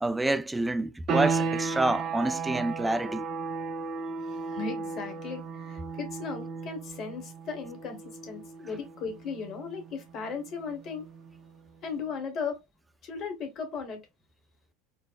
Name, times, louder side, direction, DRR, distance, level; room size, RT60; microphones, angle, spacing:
voice 1, 0.0-3.3, right 2 dB, 10° right, 0.4 m, -28 dB
sound 1, 1.1-11.6, right 5 dB, 40° right, 0.7 m, -35 dB
voice 2, 4.3-11.1 11.8-12.6 13.0-14.0, left 5 dB, 45° left, 1.2 m, -37 dB
4.5 x 2.1 x 2.3 m
figure-of-eight pair, 75°, 0 cm